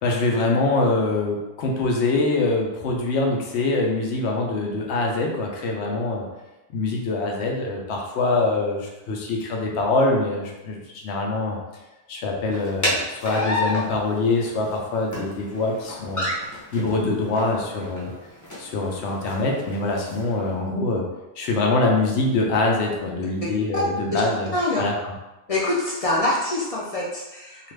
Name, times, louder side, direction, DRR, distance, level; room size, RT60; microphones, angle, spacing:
voice 1, 0.0-6.3 6.7-11.6 12.1-16.3 16.7-18.1 18.6-21.1 21.4-25.1, left 2 dB, 85° left, 0 dB, 0.9 m, -24 dB
sound 1, 12.5-20.5, left 1 dB, 20° left, 0.6 m, -31 dB
voice 2, 24.5-24.8 25.5-27.7, left 2 dB, 55° left, -5 dB, 0.4 m, -25 dB
2.5 x 2.4 x 3.2 m, 1.0 s
omnidirectional pair, 1.1 m